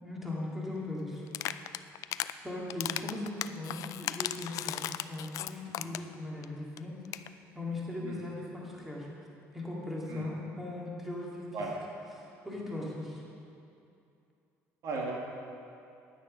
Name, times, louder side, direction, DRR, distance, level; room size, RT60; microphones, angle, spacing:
voice 1, 0.0-1.3 2.4-9.1 9.5-11.5 12.2-13.2, left 2 dB, 5° right, -5 dB, 2.4 m, -39 dB
sound 1, 1.3-2.3 2.7-6.1 6.4-6.5 6.8-6.9 7.0-7.3, left 13 dB, 65° left, 0.3 m, -36 dB
voice 2, 5.8-6.0 8.0-8.2 10.1-10.3 11.5-11.7 12.7-12.8 14.8-15.1, right 3 dB, 60° right, -2 dB, 1.8 m, -37 dB
10.0 x 9.5 x 5.2 m, 2.6 s
cardioid pair, 105°, 6 cm